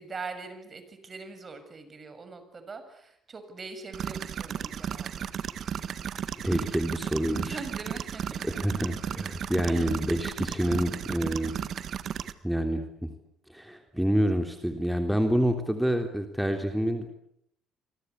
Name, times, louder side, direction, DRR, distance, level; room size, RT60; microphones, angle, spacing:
voice 1, 0.0-5.3 7.4-8.5 9.7-9.9, right 4 dB, 35° right, 9 dB, 6.8 m, -42 dB
sound 1, 3.9-12.3, right 8 dB, 55° right, 1.6 m, -34 dB
voice 2, 6.4-7.6 8.5-11.6 12.4-13.1 13.5-17.1, equal, 5° right, 5 dB, 3.4 m, -27 dB
27.0 x 24.0 x 8.4 m, 0.74 s
hypercardioid pair, 55°, 0 cm